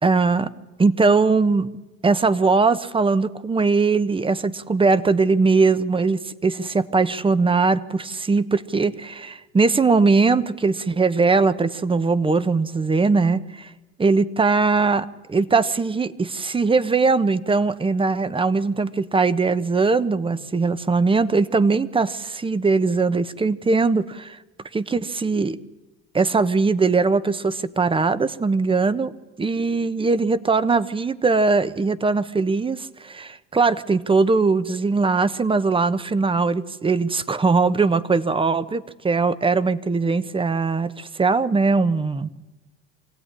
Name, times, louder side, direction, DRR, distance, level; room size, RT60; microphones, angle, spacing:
voice 1, 0.0-0.5 0.8-1.7 2.0-13.7 14.0-24.4 24.7-25.6 26.1-29.1 29.4-42.3, right 4 dB, 15° right, 15 dB, 1.2 m, -20 dB
25.5 x 16.5 x 9.9 m, 1.1 s
supercardioid pair, 100°, 33 cm